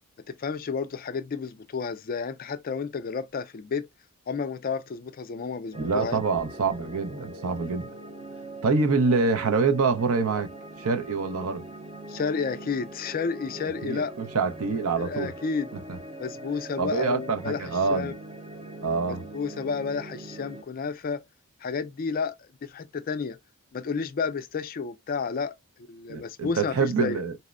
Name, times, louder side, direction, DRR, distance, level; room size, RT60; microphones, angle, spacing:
voice 1, 0.3-3.9 4.3-6.2 12.1-14.1 15.0-15.7 16.2-18.1 19.1-21.2 21.6-23.4 23.7-25.5 25.9-27.2, left 5 dB, 40° left, 0.4 m, -31 dB
sound 1, 5.7-20.6, right 1 dB, 25° right, 0.6 m, -42 dB
voice 2, 5.8-7.9 8.6-10.5 10.8-11.6 13.8-15.3 15.9-16.0 16.8-18.2 18.8-19.2 26.1-27.4, right 4 dB, 75° right, 0.6 m, -26 dB
4.1 x 2.0 x 2.3 m
head